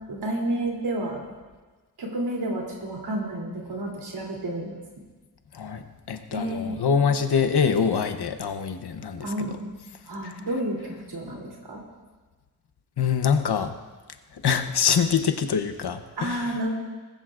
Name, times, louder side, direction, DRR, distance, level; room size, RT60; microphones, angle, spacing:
voice 1, 0.1-1.2 2.0-4.7 6.3-6.9 9.2-9.7 10.1-11.8 16.2-16.7, right 1 dB, 85° right, -2 dB, 3.1 m, -30 dB
voice 2, 5.5-9.6 10.2-10.3 13.0-13.8 14.3-16.6, left 6 dB, 80° left, 8 dB, 1.0 m, -25 dB
19.5 x 14.5 x 2.5 m, 1.3 s
wide cardioid pair, 125°, 39 cm